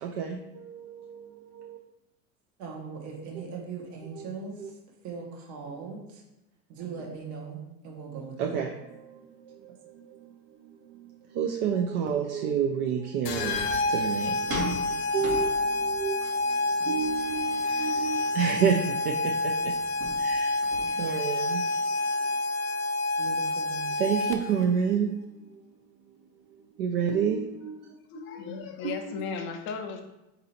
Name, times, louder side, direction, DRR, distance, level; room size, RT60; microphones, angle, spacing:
voice 1, 0.0-1.8 4.1-4.3 4.6-4.7 8.4-10.3 10.6-19.7 20.2-20.5 20.9-21.6 24.0-25.2 25.5-25.6 26.8-27.8, right 7 dB, 70° right, 2 dB, 0.6 m, -30 dB
voice 2, 2.6-4.8 5.0-6.2 6.7-8.6 23.2-23.8, right 5 dB, 40° right, -1 dB, 0.8 m, -39 dB
sound 1, 13.3-24.6, left 2 dB, 80° left, 0.7 m, -28 dB
sound 2, 13.3-20.9, equal, 85° right, 1.4 m, -41 dB
voice 3, 27.8-30.0, left 5 dB, 30° left, 4 dB, 0.4 m, -36 dB
4.1 x 2.7 x 4.1 m, 0.95 s
supercardioid pair, 120°, 48 cm